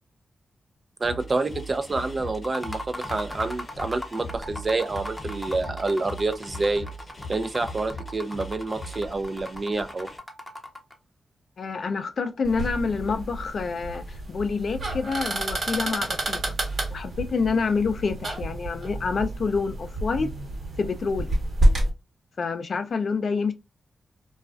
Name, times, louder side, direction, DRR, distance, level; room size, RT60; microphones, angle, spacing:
sound 1, 1.0-10.2, equal, 45° left, 0.8 m, -40 dB
voice 1, 1.0-6.9 7.3-10.1, right 3 dB, 45° right, 0.4 m, -28 dB
sound 2, 2.3-11.0, left 1 dB, 10° left, 0.6 m, -39 dB
voice 2, 11.6-16.6 16.9-20.3 20.8-21.4 22.4-23.5, left 4 dB, 65° left, 0.4 m, -27 dB
sound 3, 12.4-21.9, right 1 dB, 60° right, 1.0 m, -28 dB
2.3 x 2.2 x 2.4 m
cardioid pair, 60°, 0 cm